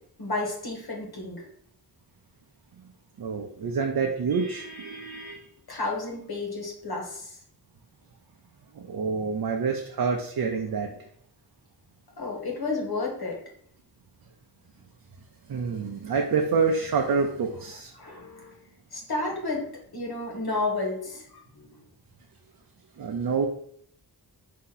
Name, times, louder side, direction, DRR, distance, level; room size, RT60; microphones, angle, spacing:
voice 1, 0.2-1.4 5.7-7.4 12.2-13.4 17.9-18.6 18.9-19.6 19.9-21.8, left 3 dB, 70° left, -1 dB, 1.3 m, -31 dB
voice 2, 3.2-5.5 8.7-11.1 15.5-17.9 23.0-23.5, right 5 dB, 65° right, 2 dB, 0.6 m, -27 dB
4.3 x 2.8 x 3.9 m, 0.65 s
wide cardioid pair, 125°, 39 cm